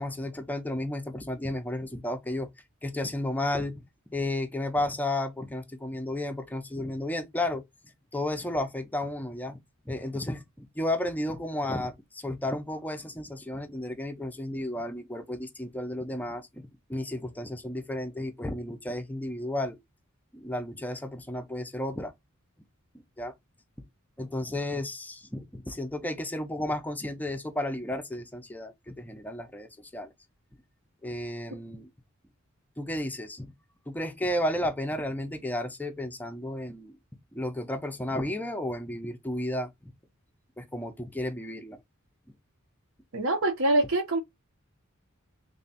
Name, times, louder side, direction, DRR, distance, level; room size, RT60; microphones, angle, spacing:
voice 1, 0.0-2.5 2.8-3.8 4.1-7.6 8.1-9.6 9.9-19.8 20.3-22.1 23.2-23.3 24.2-30.1 31.0-31.9 32.8-33.5 33.9-37.0 37.3-39.9 40.6-41.8, left 1 dB, 10° left, 0.5 m, -33 dB
voice 2, 43.1-44.2, right 1 dB, 70° right, 0.9 m, -24 dB
3.3 x 2.3 x 4.0 m
head